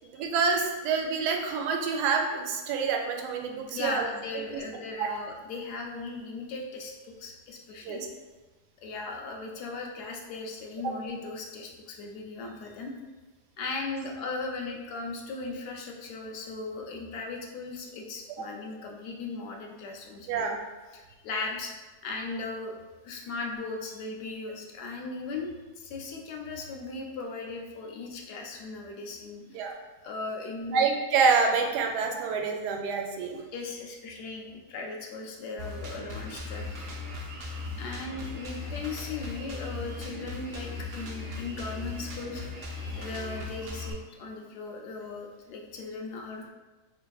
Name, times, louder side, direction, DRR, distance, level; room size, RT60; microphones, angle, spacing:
voice 1, 0.1-4.1 5.0-5.1 7.8-8.1 10.8-10.9 18.4-18.5 20.3-20.6 29.5-29.7 30.7-33.4, right 5 dB, 85° right, 2 dB, 1.2 m, -27 dB
voice 2, 3.7-8.0 8.8-12.9 13.6-20.6 20.9-22.7 23.0-29.6 30.0-30.8 33.5-36.6 37.8-42.4 42.8-46.5, left 3 dB, 80° left, 1 dB, 1.2 m, -38 dB
Drum kit, 35.6-43.9, left 3 dB, 65° right, 0.5 m, -38 dB
4.5 x 3.3 x 2.3 m, 1.2 s
omnidirectional pair, 1.7 m